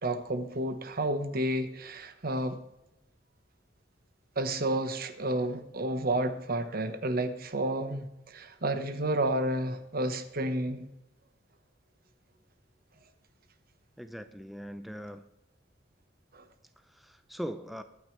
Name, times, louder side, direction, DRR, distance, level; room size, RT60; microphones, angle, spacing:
voice 1, 0.0-2.6 4.4-10.9 16.3-16.4, right 1 dB, 55° right, 1.2 m, -31 dB
voice 2, 14.0-15.2 16.8-17.8, equal, ahead, 0.6 m, -40 dB
21.5 x 9.4 x 3.3 m
head